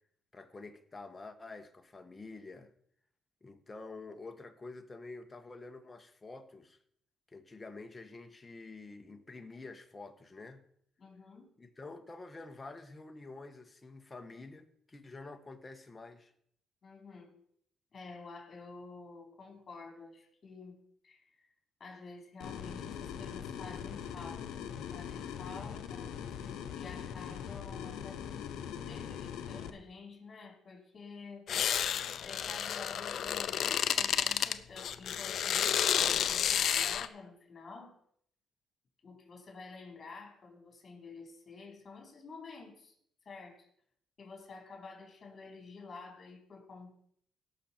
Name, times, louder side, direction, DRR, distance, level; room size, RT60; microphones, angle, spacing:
voice 1, 0.3-2.7 3.4-6.8 7.3-10.6 11.6-16.3, left 3 dB, 20° left, 6 dB, 1.4 m, -48 dB
voice 2, 11.0-11.5 16.8-17.4 17.9-20.8 21.0-21.2 21.8-26.4 26.7-28.2 28.9-31.5 32.2-38.0 39.0-43.0 43.3-43.7 44.2-46.9, left 4 dB, 40° left, 2 dB, 3.8 m, -50 dB
sound 1, 22.4-29.7, left 8 dB, 85° left, 0.9 m, -41 dB
sound 2, 31.5-37.1, left 9 dB, 65° left, 0.6 m, -31 dB
17.5 x 6.4 x 4.5 m, 0.66 s
cardioid pair, 90°, 0 cm